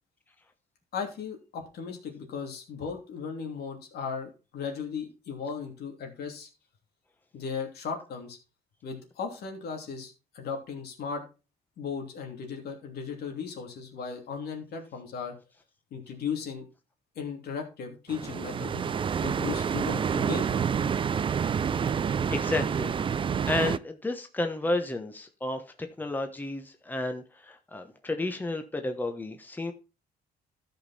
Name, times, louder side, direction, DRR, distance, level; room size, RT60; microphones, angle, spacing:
voice 1, 0.9-6.5 7.3-8.4 8.8-11.2 11.8-15.3 15.9-16.6 17.1-18.9 19.2-20.7, left 6 dB, 75° left, 2 dB, 2.9 m, -36 dB
sound 1, 18.1-23.8, right 7 dB, 30° right, 0.4 m, -28 dB
voice 2, 22.3-22.9 23.5-29.7, left 2 dB, 10° left, 6 dB, 1.1 m, -32 dB
13.0 x 5.3 x 4.2 m, 0.31 s
cardioid pair, 110°, 16 cm